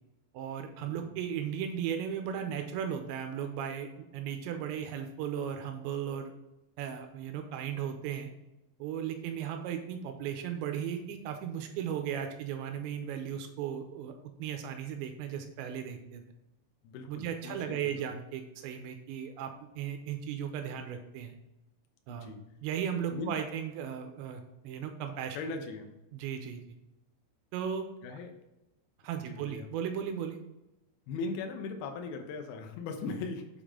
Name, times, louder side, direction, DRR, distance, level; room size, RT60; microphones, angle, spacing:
voice 1, 0.3-6.3 6.8-8.3 8.8-16.2 17.1-19.5 19.8-21.3 22.1-22.3 22.6-25.4 26.1-26.6 27.5-27.9 29.0-30.4, right 8 dB, 85° right, 6 dB, 2.8 m, -36 dB
voice 2, 16.8-18.1 22.1-22.4 23.1-23.4 25.3-25.9 28.0-28.4 29.3-29.7 31.1-33.5, left 4 dB, 80° left, 4 dB, 2.2 m, -39 dB
7.2 x 5.2 x 3.6 m, 0.94 s
omnidirectional pair, 5.4 m